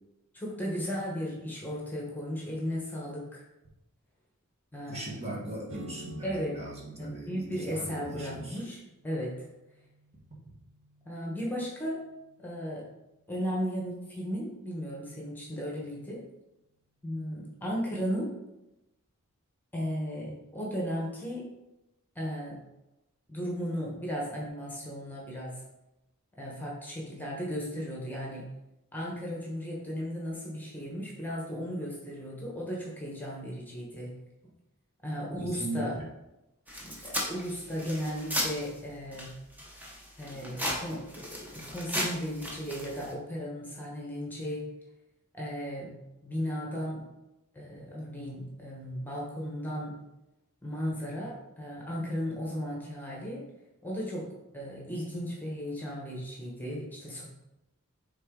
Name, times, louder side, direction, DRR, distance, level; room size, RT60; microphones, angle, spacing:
voice 1, 0.3-3.4 4.7-5.2 6.2-6.6 7.0-9.5 11.0-12.0 12.4-12.9 13.3-16.2 17.0-18.3 19.7-21.4 22.1-22.6 23.3-25.6 26.4-28.4 28.9-34.1 35.0-36.0 36.8-39.3 40.2-44.6 45.3-45.9 46.2-47.0 47.5-49.9 50.6-53.4 53.8-54.3 54.5-57.3, equal, 10° left, -3 dB, 1.2 m, -35 dB
voice 2, 4.9-8.6 35.4-36.0, right 1 dB, 30° right, -4 dB, 1.4 m, -38 dB
sound 1, 5.7-13.3, right 1 dB, 65° right, 0.8 m, -53 dB
sound 2, 36.7-38.8 39.1-43.1, equal, 10° right, 0.9 m, -36 dB
6.4 x 3.9 x 3.8 m, 0.94 s
head